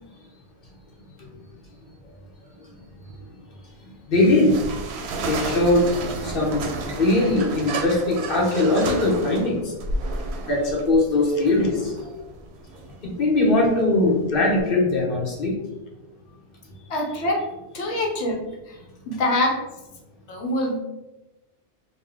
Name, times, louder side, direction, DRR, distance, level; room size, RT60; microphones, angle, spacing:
voice 1, 3.8-4.8 5.2-5.9 6.2-9.7 10.5-12.1 13.0-15.5, left 2 dB, 50° left, -3 dB, 1.3 m, -21 dB
sound 1, 4.1-14.6, right 3 dB, 70° right, 0.8 m, -32 dB
voice 2, 16.9-17.5 17.7-18.8 19.1-19.6 20.3-20.8, left 1 dB, 70° left, 1 dB, 1.1 m, -25 dB
4.2 x 2.2 x 3.5 m, 1.0 s
omnidirectional pair, 1.2 m